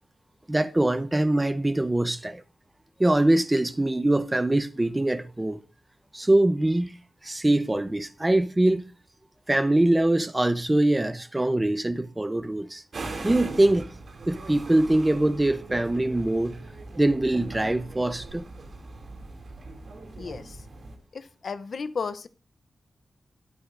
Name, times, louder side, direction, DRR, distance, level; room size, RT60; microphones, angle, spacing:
voice 1, 0.5-2.4 3.0-5.6 6.1-6.9 7.2-8.9 9.5-12.8 13.2-13.9 14.3-16.6 17.0-18.4, right 1 dB, 15° right, 0.6 m, -23 dB
sound 1, 12.9-21.0, right 2 dB, 55° right, 2.5 m, -40 dB
voice 2, 20.2-20.5 21.1-22.3, left 5 dB, 50° left, 0.6 m, -34 dB
21.0 x 8.4 x 2.5 m
wide cardioid pair, 170°, 0 cm